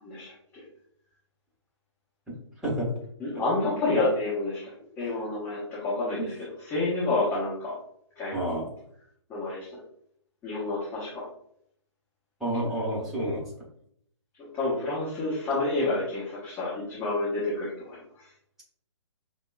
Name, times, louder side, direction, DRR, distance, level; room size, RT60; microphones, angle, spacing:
voice 1, 0.0-0.3 3.2-6.3 6.6-7.7 8.2-8.4 9.3-9.7 10.4-11.2 14.4-18.3, left 2 dB, 15° left, -9 dB, 1.1 m, -29 dB
voice 2, 8.3-8.7 12.4-13.4, right 1 dB, 5° right, -7 dB, 1.0 m, -29 dB
5.4 x 2.2 x 2.4 m, 0.68 s
figure-of-eight pair, 135°, 16 cm